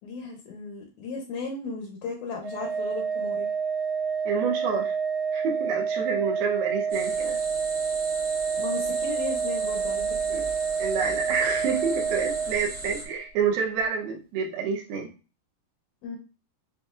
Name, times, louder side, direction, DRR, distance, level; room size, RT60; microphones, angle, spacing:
voice 1, 0.0-3.5 7.2-7.3 8.6-10.1 16.0-16.2, left 4 dB, 75° left, 1 dB, 1.7 m, -36 dB
Organ, 2.4-13.1, right 6 dB, 65° right, 1.4 m, -28 dB
voice 2, 4.3-5.0 5.3-7.4 10.3-10.5 10.8-15.1, right 6 dB, 80° right, 0 dB, 2.8 m, -28 dB
sound 1, 6.9-13.0, right 2 dB, 40° right, 1.2 m, -38 dB
7.5 x 2.5 x 2.4 m, 0.33 s
omnidirectional pair, 4.3 m